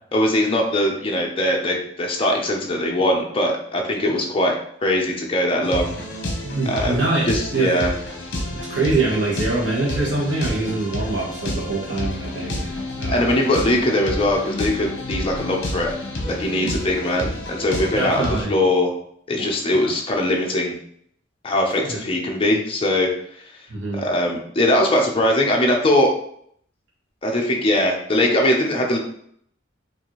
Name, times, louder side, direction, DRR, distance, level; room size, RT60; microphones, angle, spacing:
voice 1, 0.1-4.6 4.8-5.9 6.7-7.9 13.1-15.9 16.3-18.9 19.3-20.8 21.4-23.1 23.9-26.1 27.2-29.0, left 1 dB, 30° left, 0 dB, 0.7 m, -21 dB
sound 1, 5.6-18.4, left 1 dB, 60° left, 0.9 m, -30 dB
voice 2, 6.4-7.2 7.5-7.7 8.7-13.3 17.9-18.5 19.4-19.5 21.8-22.0 23.7-24.0, right 2 dB, 70° right, -5 dB, 1.0 m, -24 dB
4.5 x 2.6 x 3.0 m, 0.66 s
head